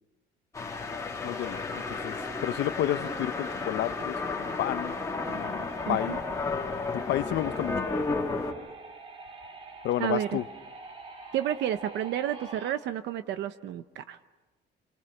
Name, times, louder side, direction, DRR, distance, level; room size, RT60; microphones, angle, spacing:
sound 1, 0.5-8.5, left 3 dB, 15° left, 1.9 m, -33 dB
sound 2, 0.7-12.7, right 3 dB, 30° right, 2.2 m, -46 dB
voice 1, 1.2-4.9 5.3-6.2 6.9-7.8 9.8-10.4, left 13 dB, 65° left, 14 dB, 0.8 m, -31 dB
voice 2, 5.9-6.2 10.0-10.4 11.3-14.2, right 11 dB, 65° right, 10 dB, 0.8 m, -31 dB
28.5 x 27.5 x 6.6 m, 1.2 s
cardioid pair, 175°, 19 cm